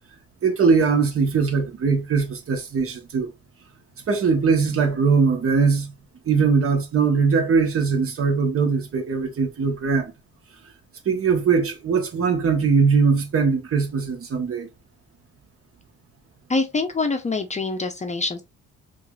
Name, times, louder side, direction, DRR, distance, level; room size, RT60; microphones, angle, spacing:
voice 1, 0.4-3.3 4.1-5.9 6.3-10.1 11.0-14.7, right 5 dB, 50° right, 1.1 m, -21 dB
voice 2, 16.5-18.4, left 3 dB, 25° left, 0.6 m, -25 dB
4.6 x 2.5 x 2.3 m
cardioid pair, 90°, 30 cm